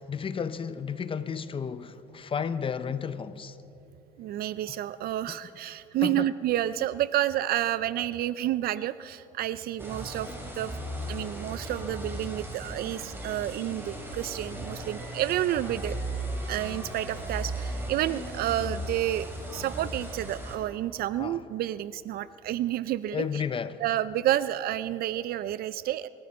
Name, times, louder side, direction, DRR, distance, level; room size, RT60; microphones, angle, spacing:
voice 1, 0.0-3.6 6.0-6.3 21.2-21.4 23.1-23.8, left 6 dB, 30° left, 0.6 m, -32 dB
voice 2, 4.2-10.3 10.5-10.8 11.1-16.0 16.5-23.2 23.8-26.1, right 13 dB, 65° right, 0.4 m, -30 dB
sound 1, 9.8-20.6, right 1 dB, 15° right, 3.3 m, -36 dB
24.5 x 14.0 x 4.2 m
cardioid pair, 110°, 17 cm